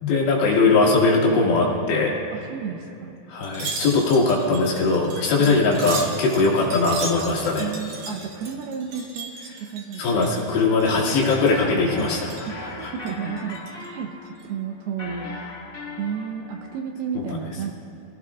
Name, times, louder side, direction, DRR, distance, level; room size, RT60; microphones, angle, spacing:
voice 1, 0.0-2.1 3.3-7.7 10.0-12.3 12.8-12.9, left 3 dB, 75° left, -4 dB, 4.3 m, -20 dB
voice 2, 2.3-3.1 5.4-5.6 7.6-9.3 9.6-10.1 12.0-15.4 16.0-17.7, right 7 dB, 75° right, 3 dB, 2.5 m, -32 dB
Wind chime, 3.4-10.5 10.8-11.6 12.0-12.5 13.0-13.9 14.3-14.4, right 3 dB, 60° right, 3.0 m, -36 dB
sound 1, 11.0-16.8, left 3 dB, 45° left, 1.1 m, -39 dB
26.0 x 16.5 x 2.4 m, 2.9 s
omnidirectional pair, 5.0 m